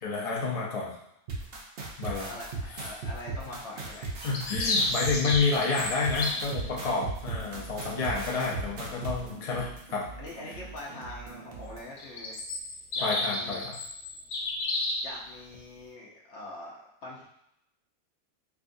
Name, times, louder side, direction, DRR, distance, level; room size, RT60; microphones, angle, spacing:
voice 1, 0.0-0.9 2.0-2.3 4.2-10.0 13.0-13.8, left 4 dB, 45° left, -3 dB, 0.4 m, -29 dB
sound 1, 1.3-9.1, right 3 dB, 55° right, 0.7 m, -36 dB
voice 2, 2.3-4.2 10.2-12.4 12.9-13.7 15.0-17.2, left 1 dB, 60° left, -2 dB, 1.0 m, -43 dB
sound 2, 3.9-6.5 12.0-15.1, left 2 dB, 90° left, 1.2 m, -31 dB
sound 3, 6.1-11.8, right 5 dB, 75° right, 1.1 m, -45 dB
4.6 x 2.3 x 2.6 m, 0.79 s
omnidirectional pair, 1.5 m